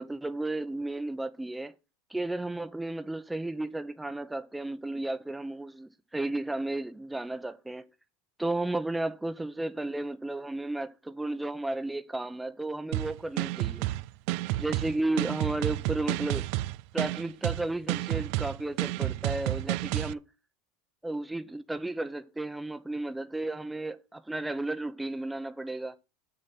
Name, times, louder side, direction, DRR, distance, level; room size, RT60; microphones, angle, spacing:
voice 1, 0.0-1.7 2.1-7.9 8.4-13.9 14.6-16.5 16.9-20.2 21.0-26.0, right 2 dB, 5° right, 0.9 m, -33 dB
sound 1, 12.9-20.1, right 17 dB, 60° right, 0.4 m, -30 dB
8.4 x 6.7 x 6.0 m
supercardioid pair, 135°, 0 cm